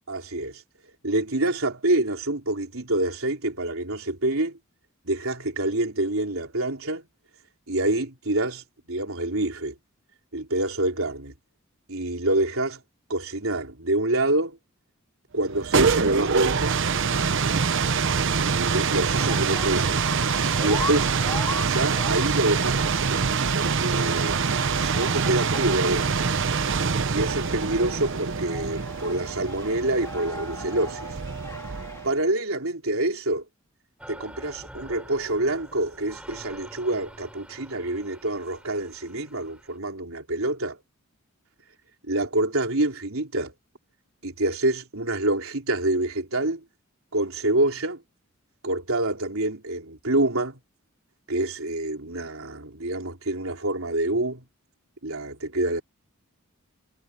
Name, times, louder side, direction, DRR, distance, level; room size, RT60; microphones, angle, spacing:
voice 1, 0.1-0.6 1.0-4.6 5.0-7.0 7.7-9.7 10.3-11.3 11.9-12.8 13.1-14.6 15.3-16.7 18.4-20.0 20.6-21.1 21.7-23.3 23.5-24.4 24.8-26.3 27.1-31.1 32.0-33.4 34.1-40.8 42.1-43.5 44.2-46.6 47.1-48.0 48.6-50.6 51.3-54.4 55.0-55.8, right 2 dB, 80° right, 3.8 m, -26 dB
sound 1, 15.4-32.2, right 5 dB, 60° right, 0.9 m, -25 dB
sound 2, 19.0-32.1, left 2 dB, 15° left, 4.2 m, -39 dB
sound 3, 34.0-39.8, right 1 dB, 5° right, 5.4 m, -46 dB
head